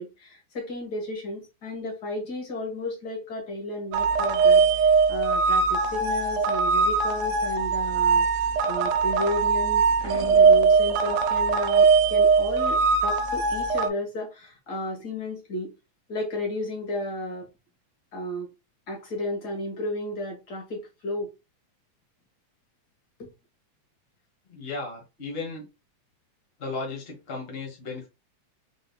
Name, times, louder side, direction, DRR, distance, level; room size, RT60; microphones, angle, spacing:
voice 1, 0.0-15.7 16.1-17.5 18.1-18.5 18.9-21.3 23.2-23.3, left 1 dB, 40° left, 1.6 m, -33 dB
sound 1, 3.9-13.9, right 5 dB, 85° right, 2.0 m, -21 dB
voice 2, 24.5-25.7 26.6-28.1, left 3 dB, 60° left, 0.6 m, -35 dB
4.8 x 3.7 x 2.2 m
omnidirectional pair, 3.4 m